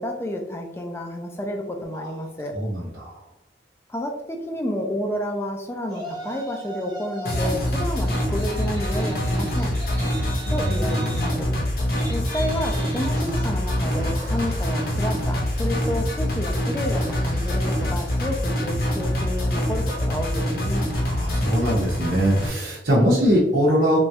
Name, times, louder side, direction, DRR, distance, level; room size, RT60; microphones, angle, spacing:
voice 1, 0.0-2.6 3.9-9.7 10.5-11.5 12.1-20.9, left 1 dB, 15° left, 3 dB, 0.3 m, -30 dB
voice 2, 2.5-3.2 10.4-11.6 21.1-24.0, equal, 60° right, -5 dB, 0.6 m, -22 dB
Yell, 5.9-7.5 7.9-18.3, right 1 dB, 20° right, 0.8 m, -40 dB
sound 1, 7.3-22.5, equal, 50° left, 0.6 m, -25 dB
3.0 x 2.3 x 2.7 m, 0.88 s
head